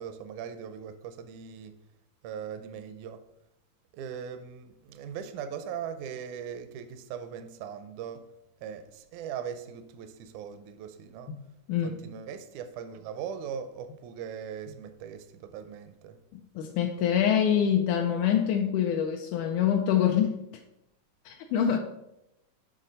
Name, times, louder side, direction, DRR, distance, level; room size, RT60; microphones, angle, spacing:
voice 1, 0.0-1.8 2.2-3.3 3.9-8.2 8.6-11.3 11.8-16.2, right 8 dB, 80° right, 1.8 m, -40 dB
voice 2, 16.3-20.6 21.3-21.8, left 9 dB, 85° left, 1.8 m, -25 dB
7.5 x 3.9 x 5.3 m
omnidirectional pair, 4.0 m